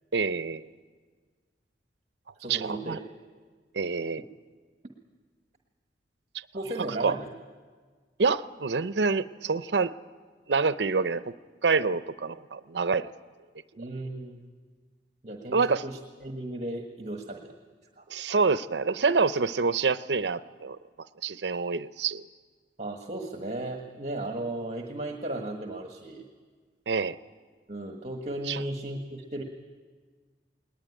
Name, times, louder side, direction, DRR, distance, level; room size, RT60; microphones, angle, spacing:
voice 1, 0.1-0.7 2.5-3.0 3.7-4.2 7.0-7.2 8.2-9.9 10.5-11.3 11.6-13.1 15.5-15.8 18.1-20.8 21.2-22.2 26.9-27.1 28.5-28.6, right 4 dB, 75° right, 14 dB, 0.7 m, -26 dB
voice 2, 2.4-3.0 6.5-7.3 13.8-14.4 15.2-17.5 18.0-18.1 22.8-26.2 27.7-29.4, right 1 dB, 40° right, 3 dB, 1.5 m, -35 dB
19.5 x 19.5 x 9.8 m, 1.6 s
head